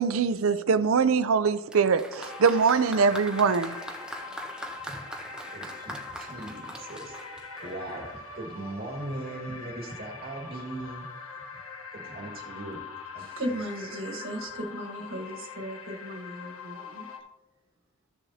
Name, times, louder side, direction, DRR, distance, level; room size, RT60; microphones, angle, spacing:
voice 1, 0.0-3.8, right 5 dB, 90° right, 0.5 m, -23 dB
Applause, 1.7-8.2 9.1-9.2, right 1 dB, 5° right, 0.9 m, -42 dB
sound 1, 2.2-17.2, left 5 dB, 85° left, 1.4 m, -43 dB
voice 2, 5.5-7.2 7.6-11.1 11.5-11.6 11.9-12.8 13.1-13.9, right 1 dB, 50° right, 1.9 m, -39 dB
voice 3, 13.2-17.1, right 1 dB, 75° right, 1.5 m, -36 dB
14.5 x 6.9 x 2.8 m
head